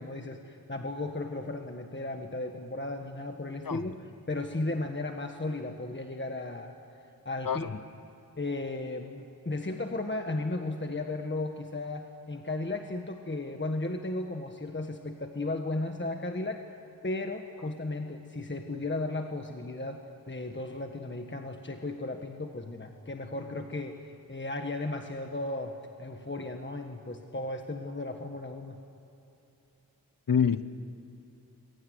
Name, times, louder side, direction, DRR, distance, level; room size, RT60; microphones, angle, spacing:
voice 1, 0.0-4.0 4.3-6.7 7.2-7.8 8.4-16.6 17.0-28.8, left 2 dB, 30° left, 4 dB, 1.5 m, -35 dB
voice 2, 30.3-30.6, left 7 dB, 65° left, 12 dB, 1.0 m, -26 dB
27.0 x 22.5 x 9.6 m, 2.9 s
wide cardioid pair, 80°, 36 cm